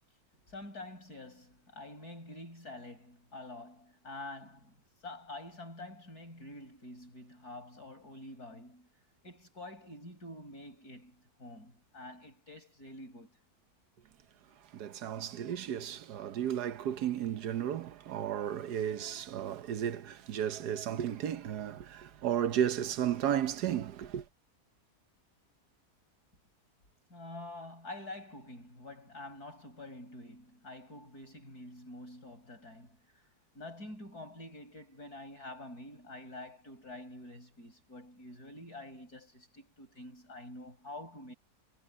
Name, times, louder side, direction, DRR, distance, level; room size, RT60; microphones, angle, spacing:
voice 1, 0.3-4.8 5.0-8.9 9.2-13.4 27.1-33.2 33.5-41.3, left 2 dB, 75° left, 8.6 m, -47 dB
voice 2, 14.7-24.2, right 10 dB, 90° right, 1.5 m, -33 dB
omnidirectional pair, 1.7 m